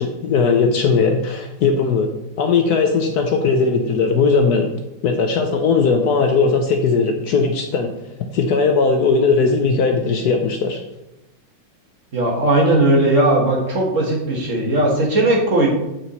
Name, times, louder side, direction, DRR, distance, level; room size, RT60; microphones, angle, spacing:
voice 1, 0.0-2.1 2.4-4.7 5.0-7.9 8.3-10.8, left 4 dB, 65° left, 4 dB, 1.1 m, -18 dB
voice 2, 12.1-15.7, right 1 dB, 45° right, -1 dB, 1.5 m, -17 dB
7.7 x 4.5 x 4.1 m, 0.94 s
omnidirectional pair, 2.0 m